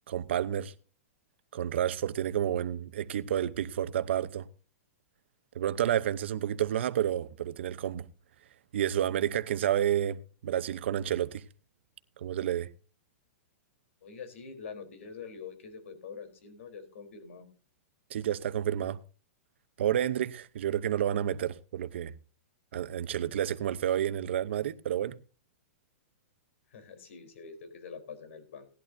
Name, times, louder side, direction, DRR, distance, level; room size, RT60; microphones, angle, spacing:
voice 1, 0.1-0.7 1.5-4.5 5.5-8.1 8.7-11.4 12.2-12.7 18.1-19.0 19.8-22.1 22.7-25.2, right 10 dB, 55° right, 0.7 m, -30 dB
voice 2, 14.0-17.5 26.7-28.7, left 5 dB, 65° left, 3.7 m, -45 dB
18.0 x 11.5 x 2.6 m
supercardioid pair, 180°, 8 cm